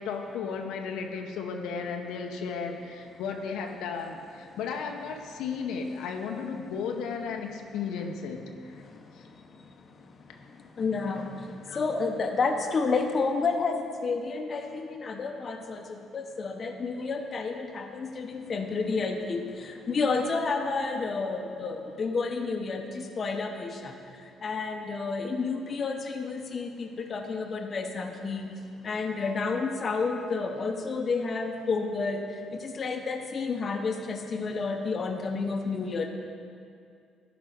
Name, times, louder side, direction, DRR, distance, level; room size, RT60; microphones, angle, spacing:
voice 1, 0.0-8.8 9.1-9.2 11.7-11.8, left 5 dB, 85° left, 3 dB, 0.7 m, -34 dB
voice 2, 8.7-36.1, left 4 dB, 40° left, 4 dB, 0.8 m, -31 dB
11.5 x 5.1 x 5.0 m, 2.4 s
cardioid pair, 105°, 0 cm